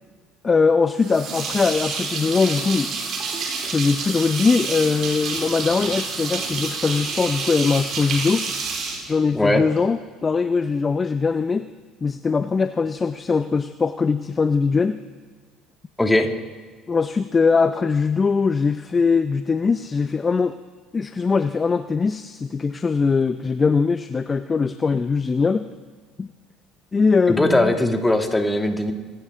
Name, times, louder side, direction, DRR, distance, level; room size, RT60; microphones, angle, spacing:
voice 1, 0.4-2.9 3.6-8.5 9.1-11.7 12.0-15.0 16.9-20.6 20.9-25.7 26.2-26.3 26.9-27.8, left 4 dB, 30° left, 11 dB, 0.6 m, -21 dB
sound 1, 1.0-9.8, right 4 dB, 50° right, 3.3 m, -28 dB
voice 2, 9.3-9.6 16.0-16.3 27.3-28.9, left 1 dB, 10° left, 4 dB, 2.3 m, -19 dB
26.0 x 11.5 x 3.7 m, 1.5 s
hypercardioid pair, 65°, 0 cm